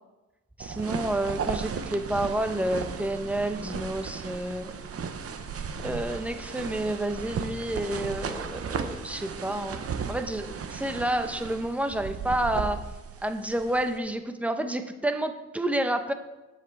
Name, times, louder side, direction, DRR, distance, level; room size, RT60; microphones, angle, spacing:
voice 1, 0.6-4.7 5.8-9.8 10.1-12.8 13.2-16.1, right 1 dB, 5° right, 8 dB, 0.6 m, -29 dB
sound 1, 0.6-14.0, right 6 dB, 50° right, 0.7 m, -35 dB
10.0 x 7.4 x 4.6 m, 1.1 s
wide cardioid pair, 145°, 31 cm